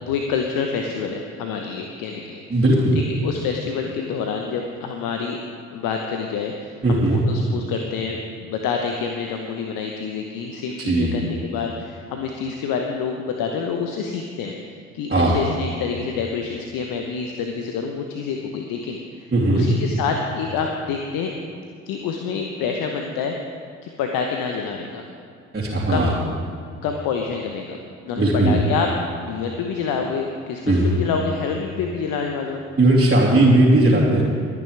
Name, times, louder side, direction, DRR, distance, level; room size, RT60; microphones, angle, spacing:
voice 1, 0.0-2.6 2.9-5.4 5.7-14.6 14.9-19.3 19.5-21.3 21.9-23.4 23.8-25.0 25.9-26.2 26.8-27.8 28.0-28.9 29.2-32.6 33.1-33.3, left 6 dB, 60° left, 3 dB, 1.0 m, -27 dB
voice 2, 2.5-3.0 6.8-7.2 10.8-11.2 15.1-15.4 19.3-19.7 25.5-26.1 28.2-28.6 30.7-31.0 32.8-34.2, right 1 dB, 25° right, -9 dB, 2.8 m, -17 dB
22.0 x 9.6 x 3.4 m, 2.3 s
figure-of-eight pair, 45°, 39 cm